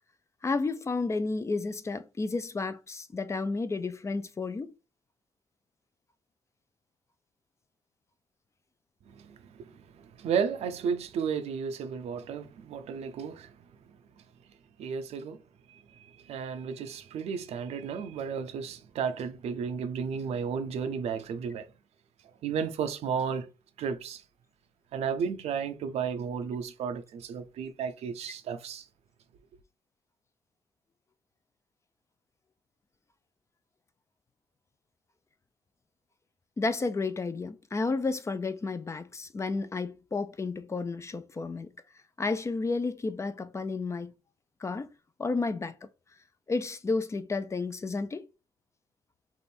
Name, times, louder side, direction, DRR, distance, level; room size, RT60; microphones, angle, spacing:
voice 1, 0.4-4.7 36.6-41.7 42.2-44.1 44.6-44.9 45.2-45.9 46.5-48.3, left 3 dB, 25° left, 0.4 m, -31 dB
voice 2, 9.1-13.5 14.8-15.4 15.7-21.7 22.4-23.5 23.8-24.2 24.9-28.8, right 6 dB, 75° right, 0.6 m, -33 dB
3.5 x 2.6 x 4.2 m
cardioid pair, 90°, 11 cm